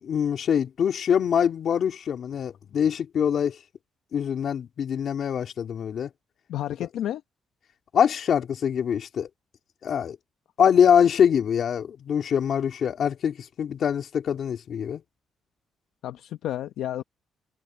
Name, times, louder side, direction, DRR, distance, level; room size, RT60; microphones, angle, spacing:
voice 1, 0.0-3.6 4.1-6.1 7.9-9.3 9.8-10.2 10.6-15.0, left 8 dB, 60° left, 3.0 m, -24 dB
voice 2, 6.5-7.2 16.0-17.0, left 12 dB, 80° left, 0.9 m, -31 dB
cardioid pair, 90°, 0 cm